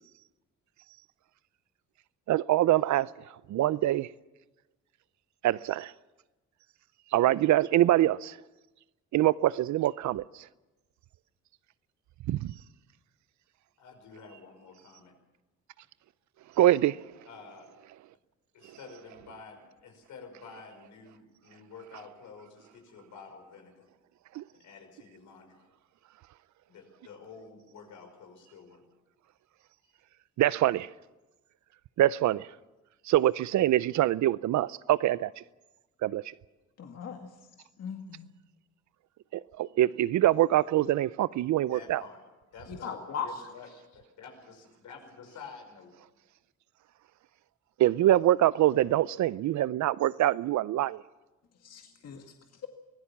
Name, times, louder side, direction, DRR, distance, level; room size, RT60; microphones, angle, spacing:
voice 1, 2.3-3.1 3.5-4.1 5.4-5.9 7.1-8.4 9.1-10.2 12.3-12.5 16.6-17.0 24.3-24.4 30.4-30.9 32.0-32.5 33.1-35.3 36.0-36.2 39.3-42.0 47.8-51.0, right 14 dB, 70° right, 0.6 m, -24 dB
voice 2, 13.8-15.1 17.3-17.7 18.5-23.9 24.5-25.7 26.7-28.8 41.6-42.2 42.5-43.8 44.2-45.9, left 5 dB, 75° left, 5.5 m, -49 dB
voice 3, 36.8-37.3 37.8-38.3 42.7-43.3 51.6-52.2, left 7 dB, 55° left, 2.0 m, -38 dB
24.0 x 17.0 x 7.3 m
cardioid pair, 90°, 30 cm